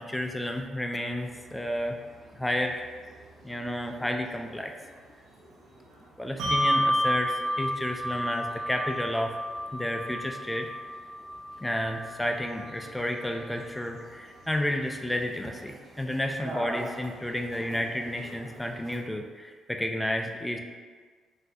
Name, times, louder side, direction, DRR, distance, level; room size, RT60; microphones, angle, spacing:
voice 1, 0.0-2.0 2.3-2.8 3.4-4.7 6.2-9.4 9.7-10.7 11.6-20.6, left 1 dB, 10° left, 4 dB, 0.3 m, -31 dB
sound 1, 1.2-19.0, right 1 dB, 65° right, 1.3 m, -48 dB
Bell, 6.4-13.3, equal, 90° right, 0.5 m, -31 dB
4.0 x 2.6 x 2.2 m, 1.5 s
cardioid pair, 90°, 0 cm